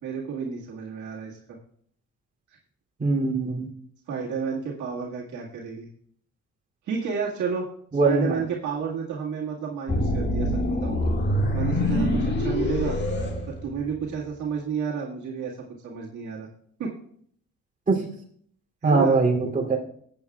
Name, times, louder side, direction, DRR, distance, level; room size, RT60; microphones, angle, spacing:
voice 1, 0.0-1.6 4.1-5.9 6.9-7.7 8.0-11.1 11.5-13.0 13.5-15.6 15.8-16.5 16.8-16.9 18.8-19.2, right 6 dB, 75° right, -4 dB, 2.0 m, -31 dB
voice 2, 3.0-3.7 7.9-8.3 17.9-18.0 18.8-19.8, right 3 dB, 25° right, -4 dB, 3.0 m, -22 dB
sound 1, 9.9-14.1, left 1 dB, 35° left, 2.1 m, -25 dB
16.0 x 8.6 x 2.4 m, 0.63 s
cardioid pair, 90°, 30 cm